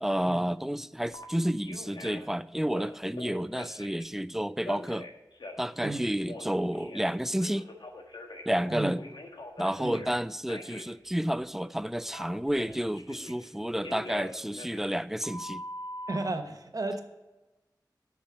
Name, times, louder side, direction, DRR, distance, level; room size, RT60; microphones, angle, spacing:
voice 1, 0.0-5.1 5.6-7.7 8.5-9.0 9.6-15.6, equal, 5° right, 0.3 m, -30 dB
Telephone, 1.1-1.2 1.6-2.3 2.6-4.0 4.6-7.1 7.4-10.1 10.5-10.8 12.1-13.5 13.8-16.2, left 1 dB, 80° left, 1.3 m, -43 dB
voice 2, 5.8-6.1 8.7-9.0 9.8-10.1 16.1-17.0, right 2 dB, 50° right, 1.1 m, -33 dB
8.4 x 6.3 x 7.9 m
wide cardioid pair, 65°, 8 cm